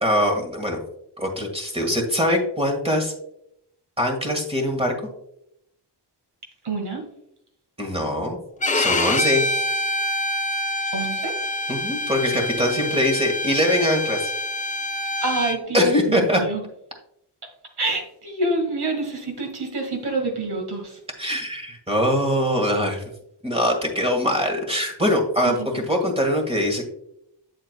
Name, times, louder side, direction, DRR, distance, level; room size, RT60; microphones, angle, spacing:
voice 1, 0.0-0.8 1.2-3.1 4.0-4.9 7.8-8.4 8.7-9.4 11.7-14.3 15.7-16.4 21.2-23.0 23.4-26.9, equal, 15° right, 2 dB, 1.7 m, -22 dB
voice 2, 6.6-7.0 10.9-11.3 15.2-16.6 17.8-21.0 25.5-25.7, right 2 dB, 65° right, 2 dB, 1.9 m, -27 dB
Bowed string instrument, 8.6-15.6, left 1 dB, 20° left, 0.4 m, -26 dB
8.0 x 7.9 x 2.2 m, 0.77 s
wide cardioid pair, 105°, 42 cm